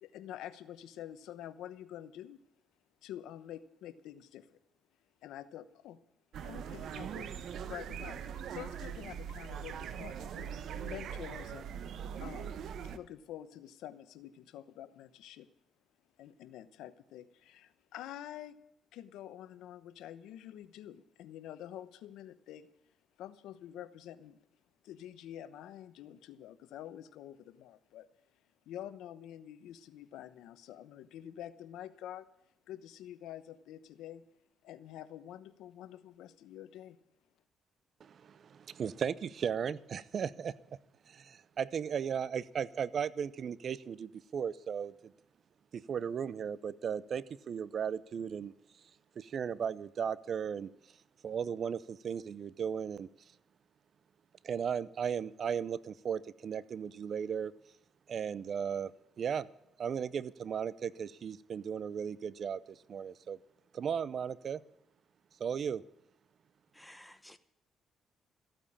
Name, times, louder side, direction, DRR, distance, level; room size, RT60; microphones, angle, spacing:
voice 1, 0.0-2.4 3.0-4.6 5.2-6.0 6.4-7.3 7.7-8.2 8.5-10.5 10.8-11.7 12.2-15.5 16.2-18.6 18.9-22.7 23.2-24.4 24.8-28.1 28.7-32.3 32.7-34.2 34.6-37.0, left 11 dB, 90° left, 0.9 m, -47 dB
sound 1, 6.3-13.0, right 8 dB, 70° right, 1.0 m, -41 dB
voice 2, 38.0-40.6 41.1-45.1 45.7-48.5 49.2-50.7 51.2-53.1 54.4-57.5 58.1-58.9 59.2-59.5 59.8-63.4 63.7-64.6 65.4-65.8, right 7 dB, 55° right, 0.6 m, -36 dB
voice 3, 66.7-67.4, left 1 dB, 5° left, 1.2 m, -54 dB
14.5 x 9.0 x 8.6 m
cardioid pair, 90°, 0 cm